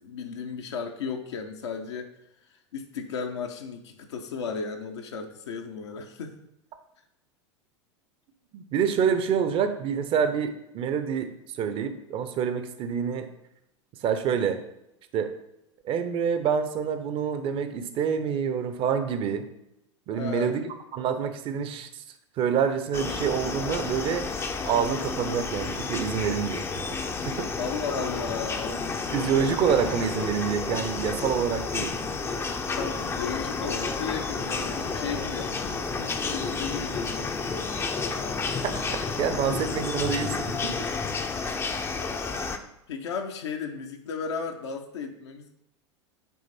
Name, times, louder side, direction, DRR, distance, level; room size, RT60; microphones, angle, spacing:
voice 1, 0.0-2.1 2.4-6.4 20.1-20.6 27.6-29.5 32.7-38.1 39.5-39.6 41.3-41.8 42.9-45.5, left 5 dB, 65° left, 3 dB, 0.7 m, -35 dB
voice 2, 8.5-13.3 14.0-14.6 15.1-15.3 15.8-19.5 20.1-20.6 20.9-22.0 22.4-24.3 24.6-27.5 29.1-31.9 38.6-40.9, right 7 dB, 35° right, 9 dB, 0.7 m, -27 dB
sound 1, 22.9-42.6, left 4 dB, 15° left, 0.6 m, -31 dB
8.4 x 3.2 x 4.1 m, 0.84 s
figure-of-eight pair, 85°, 16 cm